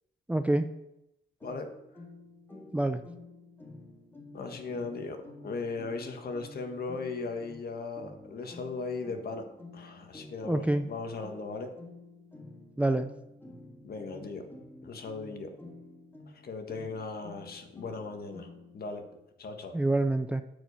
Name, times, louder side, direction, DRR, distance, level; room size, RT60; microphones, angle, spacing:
voice 1, 0.3-0.7 2.7-3.0 10.4-10.9 12.8-13.1 19.7-20.4, right 2 dB, 5° right, 9 dB, 0.4 m, -27 dB
sound 1, 1.4-18.8, left 2 dB, 10° left, 1.7 m, -50 dB
voice 2, 4.3-9.4 9.7-11.7 13.8-14.5 14.8-15.5 16.4-18.5 18.7-19.0 19.4-19.8, left 4 dB, 50° left, 5 dB, 1.6 m, -37 dB
9.1 x 5.0 x 6.8 m, 0.85 s
cardioid pair, 90°, 20 cm